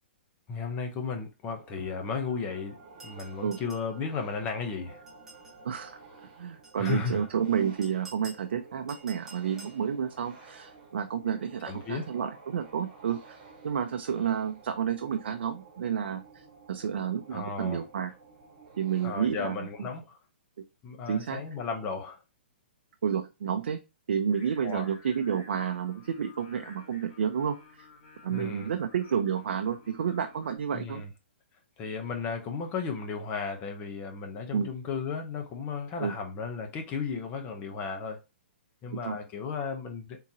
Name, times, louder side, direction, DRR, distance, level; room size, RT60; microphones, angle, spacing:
voice 1, 0.5-2.8 3.0-5.0 6.7-7.3 11.7-12.1 17.3-17.8 19.0-20.2 20.8-22.2 24.6-24.9 28.3-28.7 30.7-31.1 31.8-38.2 38.8-40.2, left 5 dB, 20° left, 0.7 m, -34 dB
sound 1, 1.4-19.1, right 4 dB, 40° right, 1.4 m, -52 dB
sound 2, 3.0-3.9 5.1-5.6 6.6-7.2 7.8-8.5 8.9-9.8, right 3 dB, 5° right, 1.0 m, -50 dB
voice 2, 5.6-6.0 6.4-13.4 13.6-18.1 18.8-19.9 21.1-21.4 23.0-23.8 24.1-27.9 28.2-31.0 34.5-34.7 36.0-36.1 38.9-39.2, right 8 dB, 70° right, 0.5 m, -30 dB
Singing, 24.3-30.6, left 4 dB, 60° left, 2.2 m, -53 dB
3.7 x 2.9 x 2.7 m
hypercardioid pair, 160°, 6 cm